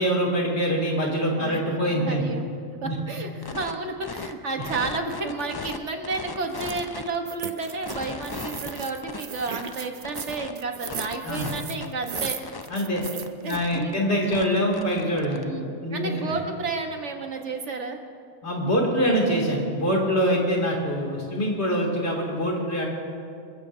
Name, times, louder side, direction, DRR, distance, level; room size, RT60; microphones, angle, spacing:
voice 1, 0.0-2.2 2.8-2.9 11.2-11.5 12.7-13.0 13.4-15.4 15.8-16.3 18.4-22.8, equal, 60° left, -2 dB, 2.9 m, -24 dB
voice 2, 1.3-1.6 2.0-2.5 2.8-12.4 13.4-14.0 15.2-18.0, right 3 dB, 70° right, 4 dB, 1.5 m, -32 dB
sound 1, 3.4-3.7 4.0-5.8 6.0-7.2 7.6-10.5 10.9-13.3 13.5-13.9 14.3-15.4, left 4 dB, 40° left, 0.3 m, -37 dB
sound 2, 6.5-6.8 7.3-13.6, right 6 dB, 45° right, 0.5 m, -36 dB
26.0 x 15.0 x 2.7 m, 2.4 s
omnidirectional pair, 1.3 m